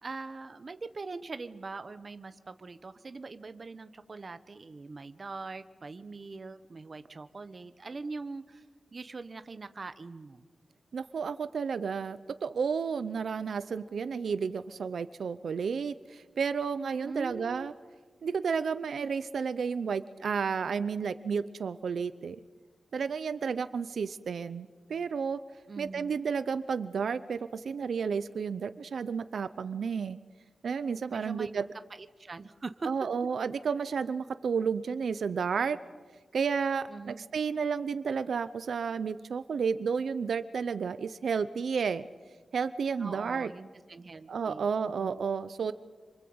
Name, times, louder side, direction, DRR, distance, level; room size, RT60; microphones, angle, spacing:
voice 1, 0.0-8.6 8.9-10.4 17.0-17.7 25.7-26.1 31.1-31.5 32.0-32.9 36.9-37.3 43.0-44.7 45.0-45.2, right 3 dB, 40° right, 11 dB, 1.1 m, -42 dB
voice 2, 10.9-17.7 18.2-22.4 22.9-25.4 25.8-30.2 30.6-31.6 32.9-35.8 36.3-42.1 42.5-43.5 44.3-45.7, right 6 dB, 80° right, 13 dB, 0.7 m, -32 dB
28.0 x 25.5 x 7.9 m, 1.4 s
wide cardioid pair, 150°, 0 cm